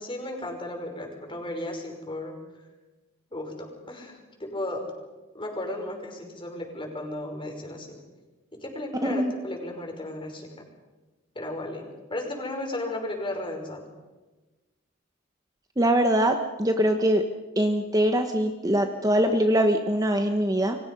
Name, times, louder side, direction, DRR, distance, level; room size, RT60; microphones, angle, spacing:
voice 1, 0.0-2.3 3.3-4.9 5.3-8.0 8.5-10.5 11.3-13.8, left 1 dB, 25° left, 2 dB, 5.5 m, -35 dB
voice 2, 15.8-17.2 17.6-20.8, right 1 dB, 20° right, 5 dB, 1.2 m, -23 dB
29.0 x 24.0 x 5.5 m, 1.2 s
head